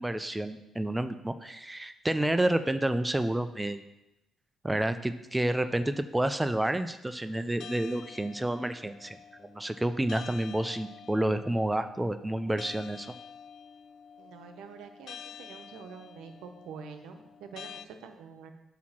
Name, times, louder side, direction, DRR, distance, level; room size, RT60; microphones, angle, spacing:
voice 1, 0.0-3.8 4.6-9.2 9.4-13.1, right 1 dB, 10° right, 10 dB, 0.4 m, -29 dB
sound 1, 7.6-17.9, left 7 dB, 70° left, 0.3 m, -49 dB
voice 2, 14.2-18.5, right 6 dB, 90° right, 6 dB, 0.7 m, -46 dB
8.3 x 2.9 x 6.0 m, 0.91 s
cardioid pair, 90°, 0 cm